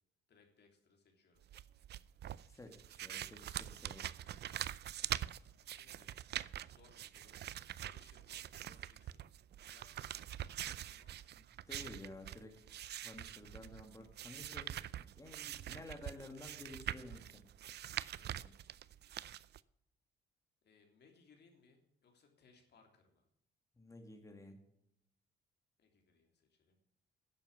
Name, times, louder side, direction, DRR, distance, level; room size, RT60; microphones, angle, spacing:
voice 1, 0.3-1.4 4.5-4.7 5.6-6.1 6.6-7.4 7.8-11.1 17.0-17.2 17.6-18.7 20.6-23.3 25.8-26.8, left 4 dB, 60° left, 3 dB, 3.3 m, -68 dB
sound 1, 1.4-19.6, right 12 dB, 55° right, 0.5 m, -44 dB
voice 2, 2.5-4.1 11.4-12.5 13.0-17.4 23.8-24.6, left 2 dB, 15° left, 3 dB, 2.1 m, -53 dB
11.0 x 7.1 x 8.1 m, 0.76 s
cardioid pair, 90°, 20 cm